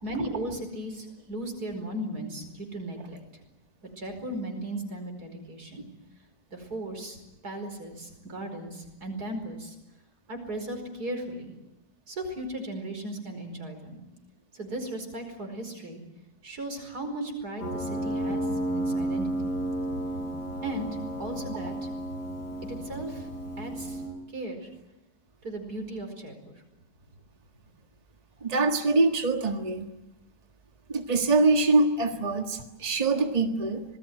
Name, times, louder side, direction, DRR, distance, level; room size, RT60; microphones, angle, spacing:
voice 1, 0.0-3.4 4.0-5.9 6.5-9.8 10.3-11.6 12.1-14.0 14.5-16.0 16.4-19.5 20.6-21.9 22.7-23.3 23.6-24.0 24.3-24.7 25.4-26.6, right 1 dB, 70° right, 5 dB, 5.5 m, -36 dB
Piano, 17.6-24.1, right 1 dB, 85° left, 8.1 m, -32 dB
voice 2, 28.4-29.9 30.9-33.8, right 3 dB, 25° right, 4 dB, 1.7 m, -24 dB
26.5 x 19.5 x 9.6 m, 0.95 s
omnidirectional pair, 1.8 m